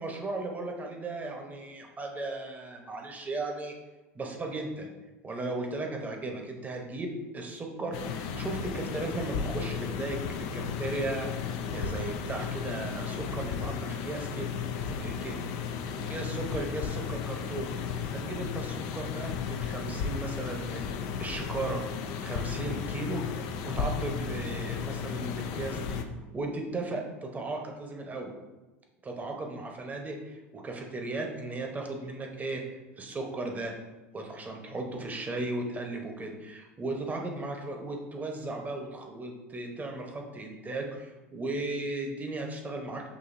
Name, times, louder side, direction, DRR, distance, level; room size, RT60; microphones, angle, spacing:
voice 1, 0.0-3.8 4.1-4.9 5.2-14.5 15.0-15.4 16.1-20.8 21.2-21.8 22.2-23.4 23.6-26.0 26.3-28.3 29.0-32.6 33.0-33.7 34.1-43.1, right 2 dB, 20° right, 2 dB, 0.9 m, -36 dB
sound 1, 7.9-26.0, left 6 dB, 60° left, 0.4 m, -34 dB
6.1 x 2.6 x 2.6 m, 1.1 s
hypercardioid pair, 85°, 7 cm